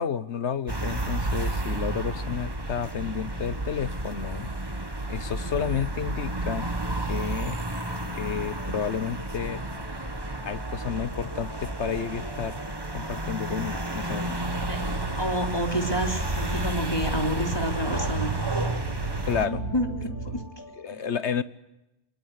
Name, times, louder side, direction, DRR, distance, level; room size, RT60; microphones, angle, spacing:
voice 1, 0.0-4.5 5.1-6.7 7.1-7.6 8.1-9.6 10.4-12.6 12.9-14.4 19.3-19.6 20.8-21.4, left 7 dB, 65° left, 15 dB, 1.4 m, -31 dB
sound 1, 0.7-19.5, right 2 dB, 20° right, 1.8 m, -31 dB
sound 2, 6.5-20.8, left 1 dB, 40° right, 5.8 m, -48 dB
sound 3, 14.4-20.5, right 4 dB, 60° right, 2.1 m, -36 dB
voice 2, 14.7-18.4 19.4-20.6 20.9-21.0, equal, 20° left, 4 dB, 3.3 m, -30 dB
24.0 x 23.5 x 9.7 m, 0.93 s
omnidirectional pair, 1.3 m